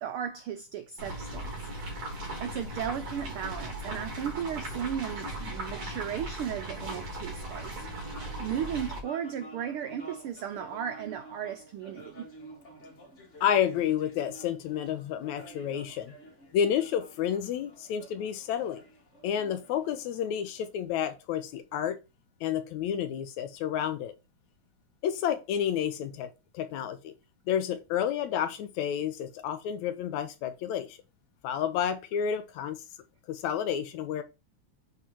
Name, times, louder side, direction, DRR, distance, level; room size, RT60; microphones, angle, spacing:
voice 1, 0.0-1.7 2.4-7.8 8.4-12.3, right 9 dB, 90° right, 1.2 m, -35 dB
sound 1, 1.0-9.0, right 1 dB, 55° right, 3.5 m, -38 dB
sound 2, 7.4-21.1, right 1 dB, 30° left, 1.8 m, -50 dB
voice 2, 13.4-16.1 16.5-18.8 19.2-22.0 22.4-24.1 25.0-27.1 27.5-31.0 31.4-32.8 33.3-34.2, left 9 dB, 80° left, 2.2 m, -30 dB
8.6 x 3.9 x 4.5 m
omnidirectional pair, 3.3 m